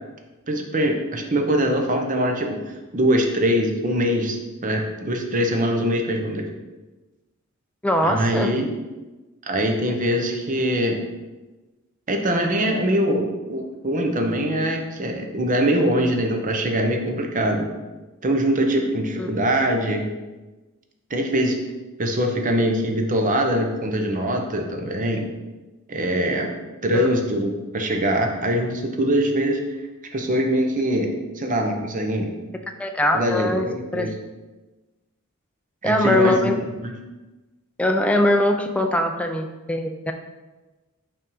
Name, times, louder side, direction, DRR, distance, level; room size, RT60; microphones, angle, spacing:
voice 1, 0.5-6.4 8.0-8.7 9.5-11.0 12.1-17.7 18.2-20.1 21.1-21.6 22.0-25.3 25.9-26.5 26.8-29.6 30.1-32.3 33.1-34.1 35.8-36.5 36.8-36.9, equal, 40° right, 3 dB, 0.8 m, -23 dB
voice 2, 7.8-8.6 19.2-19.3 26.9-27.1 32.8-33.7 33.9-34.1 35.8-36.6 37.8-40.1, left 1 dB, 5° left, 4 dB, 0.4 m, -21 dB
5.6 x 3.5 x 5.4 m, 1.2 s
head